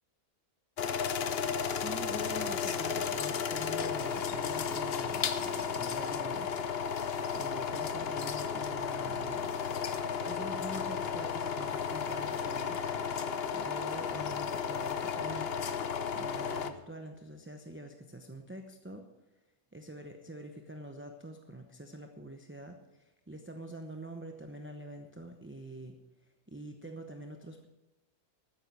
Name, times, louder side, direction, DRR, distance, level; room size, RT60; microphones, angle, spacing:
sound 1, 0.8-16.7, left 6 dB, 50° left, 0.9 m, -33 dB
voice 1, 1.4-6.5 7.3-9.5 10.2-12.9 13.5-15.6 16.1-19.1 19.7-26.0 26.5-27.7, right 1 dB, 10° right, 3 dB, 0.7 m, -45 dB
13.5 x 9.6 x 6.2 m, 0.99 s
omnidirectional pair, 1.5 m